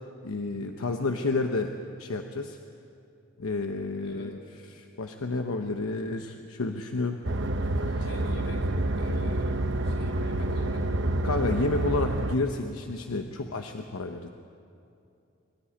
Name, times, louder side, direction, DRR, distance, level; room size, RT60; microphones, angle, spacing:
voice 1, 0.2-1.7 2.0-2.6 3.4-4.3 4.7-7.2 7.7-8.1 11.2-14.3, left 3 dB, 90° left, 5 dB, 0.9 m, -30 dB
voice 2, 4.0-4.3 8.0-11.4, equal, 65° left, 0 dB, 4.8 m, -44 dB
sound 1, 7.2-12.4, right 1 dB, 55° right, 1.0 m, -28 dB
23.5 x 13.0 x 10.0 m, 2.6 s
head